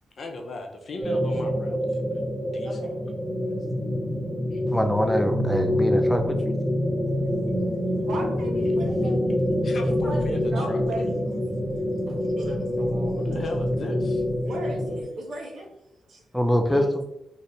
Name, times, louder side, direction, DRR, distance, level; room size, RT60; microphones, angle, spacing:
voice 1, 0.2-2.0 2.5-2.8 4.5-4.6 9.6-11.1 13.2-14.2 16.7-16.9, left 1 dB, 55° left, 3 dB, 0.6 m, -36 dB
sound 1, 1.0-15.0, left 1 dB, 15° right, 1.0 m, -26 dB
voice 2, 2.6-3.0 4.7-4.8 8.0-9.2 9.8-11.4 12.1-13.1 14.4-15.7 16.1-16.2, right 1 dB, 75° right, 0 dB, 0.9 m, -37 dB
voice 3, 4.7-6.5 16.3-16.8, equal, 5° left, 5 dB, 0.4 m, -24 dB
3.2 x 2.7 x 2.7 m, 0.83 s
cardioid pair, 100°, 0 cm